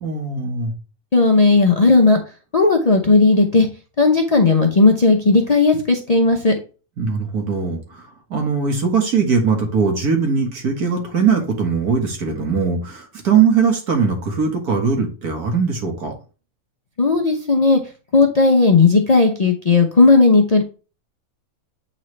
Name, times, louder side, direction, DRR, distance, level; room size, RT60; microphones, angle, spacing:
voice 1, 0.0-0.7 7.0-16.1, right 5 dB, 80° right, 2 dB, 2.0 m, -20 dB
voice 2, 1.1-2.2 2.5-3.7 4.0-6.6 17.0-17.8 18.1-20.6, left 3 dB, 40° left, 2 dB, 0.5 m, -14 dB
8.0 x 4.0 x 3.2 m, 0.35 s
omnidirectional pair, 1.6 m